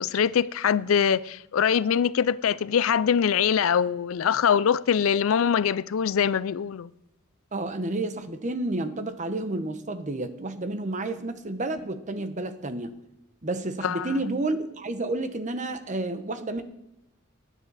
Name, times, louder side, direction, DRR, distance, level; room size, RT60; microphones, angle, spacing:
voice 1, 0.0-6.9 13.8-14.2, left 7 dB, 80° left, 0.4 m, -23 dB
voice 2, 7.5-12.9 13.4-16.6, right 2 dB, 35° right, 1.0 m, -30 dB
17.5 x 10.0 x 4.1 m
head